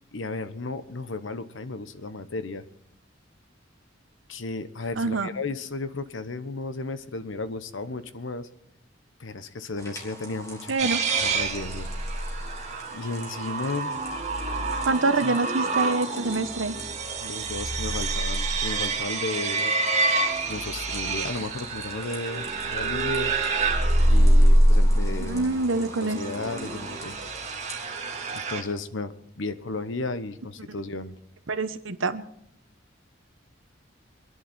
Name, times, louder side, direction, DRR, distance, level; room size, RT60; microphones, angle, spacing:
voice 1, 0.1-2.6 4.3-8.5 9.2-10.7 11.2-11.9 12.9-14.0 15.2-15.4 17.2-19.7 20.5-23.3 24.1-25.5 26.0-27.2 28.3-31.1, left 3 dB, 80° left, 12 dB, 1.0 m, -34 dB
voice 2, 5.0-5.3 10.7-11.0 14.8-16.8 25.2-26.2 31.5-32.2, right 3 dB, 90° right, 10 dB, 1.1 m, -26 dB
sound 1, 9.8-28.4, right 1 dB, 15° left, 3.0 m, -44 dB
sound 2, 10.8-28.6, right 1 dB, 35° right, 2.0 m, -25 dB
26.0 x 11.0 x 4.3 m, 0.74 s
head